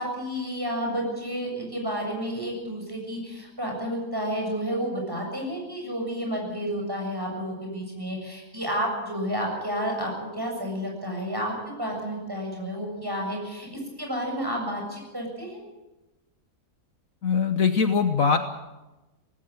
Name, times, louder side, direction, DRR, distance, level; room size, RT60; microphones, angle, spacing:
voice 1, 0.0-15.6, equal, 15° right, 0 dB, 7.3 m, -31 dB
voice 2, 17.2-18.4, left 6 dB, 60° left, 8 dB, 1.4 m, -21 dB
18.5 x 16.5 x 9.2 m, 1.1 s
omnidirectional pair, 1.7 m